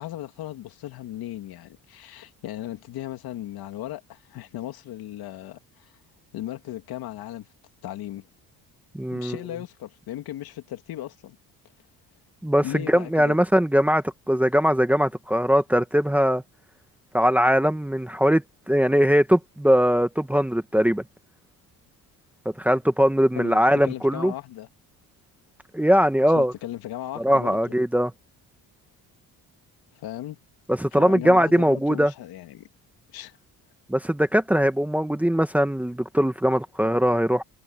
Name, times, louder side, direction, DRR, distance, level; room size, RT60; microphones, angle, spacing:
voice 1, 0.0-5.9 6.3-7.5 7.8-8.3 9.1-11.4 12.6-13.4 23.3-24.7 26.3-27.7 29.9-30.4 30.9-32.7 33.1-33.4, left 13 dB, 75° left, 2.8 m, -36 dB
voice 2, 8.9-9.4 12.4-16.4 17.1-21.0 22.6-24.3 25.7-26.5 27.2-28.1 30.7-32.1 33.9-37.4, equal, 5° right, 1.2 m, -21 dB
cardioid pair, 140°, 38 cm